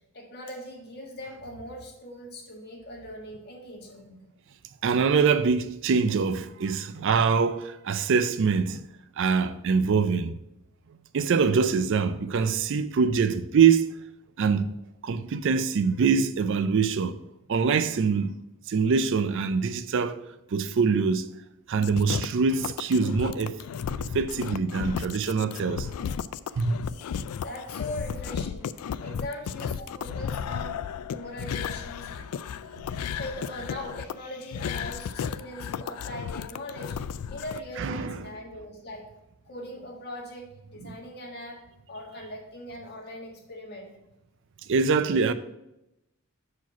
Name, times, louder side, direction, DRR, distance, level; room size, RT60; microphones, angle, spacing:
voice 1, 0.1-4.2 27.4-28.7 29.0-30.8 31.1-32.1 33.2-37.0 37.3-39.1 39.4-41.6 41.9-43.9, left 1 dB, 45° left, 1.7 m, -40 dB
voice 2, 4.8-8.8 9.2-10.3 11.1-13.9 14.4-14.7 15.0-17.2 17.5-18.3 18.7-20.2 20.5-21.3 21.7-23.6 24.0-25.9 26.6-26.8 37.8-38.3 40.8-40.9 44.7-45.3, right 5 dB, 55° right, 0.4 m, -24 dB
sound 1, 21.8-37.6, left 7 dB, 85° left, 0.3 m, -34 dB
6.0 x 4.8 x 5.8 m
head